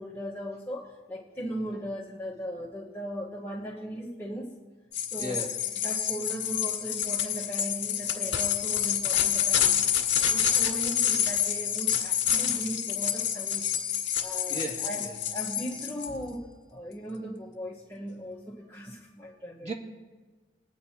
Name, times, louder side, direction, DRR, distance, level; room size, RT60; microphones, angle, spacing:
voice 1, 0.0-4.6 5.1-5.5 5.8-9.9 10.3-13.7 14.2-19.7, equal, 10° left, -6 dB, 1.3 m, -38 dB
sound 1, 4.9-16.1, left 9 dB, 70° left, 1.8 m, -28 dB
voice 2, 5.2-5.6 14.5-15.2 19.6-19.7, right 1 dB, 35° right, -1 dB, 1.9 m, -36 dB
22.5 x 9.4 x 2.9 m, 1.3 s
head